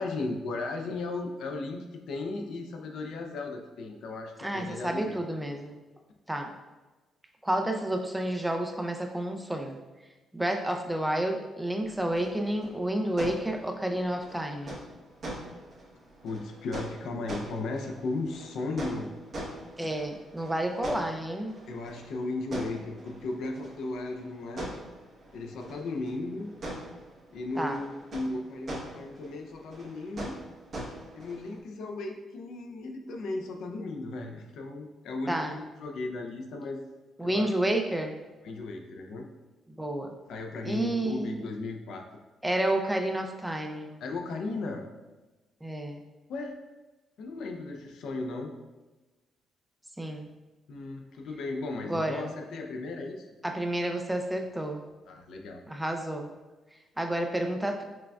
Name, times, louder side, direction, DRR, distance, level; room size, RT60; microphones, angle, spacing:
voice 1, 0.0-5.2 16.2-19.1 21.7-24.7 25.3-26.5 27.3-30.4 31.1-36.8 37.2-37.5 38.4-39.3 40.3-42.0 44.0-44.8 46.3-46.6 47.2-48.5 50.7-53.3 55.1-55.6, left 2 dB, 75° left, 3 dB, 0.5 m, -36 dB
voice 2, 4.4-5.7 6.3-6.5 7.4-9.8 10.3-14.8 19.8-21.6 27.6-27.8 35.3-35.5 37.2-38.1 39.8-40.1 40.6-41.4 42.4-43.9 45.6-46.0 50.0-50.3 51.9-52.3 53.4-54.8 55.7-56.3 57.0-57.8, right 1 dB, 5° right, 4 dB, 0.4 m, -30 dB
sound 1, 11.8-31.6, right 1 dB, 50° right, 1.1 m, -43 dB
5.8 x 2.2 x 2.3 m, 1.2 s
cardioid pair, 90°, 0 cm